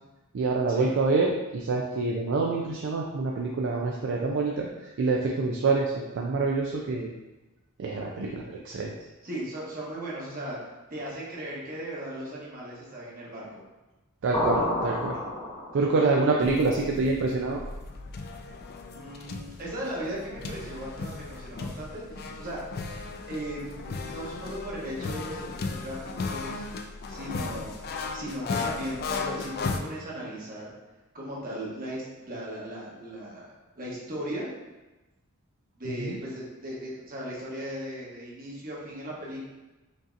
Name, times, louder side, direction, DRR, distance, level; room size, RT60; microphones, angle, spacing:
voice 1, 0.3-4.7 5.0-7.1 7.8-8.9 14.2-15.2 15.7-17.6 36.0-36.2, right 3 dB, 60° right, -1 dB, 0.4 m, -26 dB
voice 2, 9.2-10.6 10.9-13.6 18.9-22.6 23.3-26.6 27.1-27.8 28.1-30.8 31.1-33.5 33.8-34.5 35.8-39.4, right 1 dB, 40° right, -5 dB, 1.1 m, -37 dB
sound 1, 14.3-16.1, left 1 dB, 25° left, 1.1 m, -29 dB
sound 2, 16.4-29.8, left 4 dB, 45° left, 0.3 m, -36 dB
5.2 x 2.8 x 2.5 m, 1.1 s
head